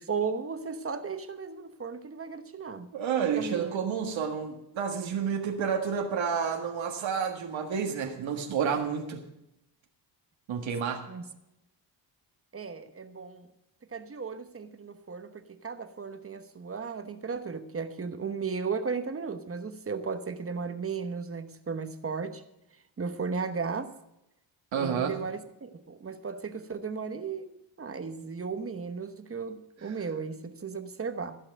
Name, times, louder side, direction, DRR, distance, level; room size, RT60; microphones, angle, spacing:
voice 1, 0.1-2.9 3.4-3.8 11.1-11.2 12.5-13.5 13.9-22.4 23.0-23.9 24.8-31.4, right 5 dB, 30° right, 9 dB, 1.1 m, -35 dB
voice 2, 2.9-9.2 10.5-11.1 24.7-25.1, right 7 dB, 75° right, 3 dB, 1.7 m, -30 dB
16.0 x 5.8 x 7.8 m, 0.87 s
cardioid pair, 110°, 47 cm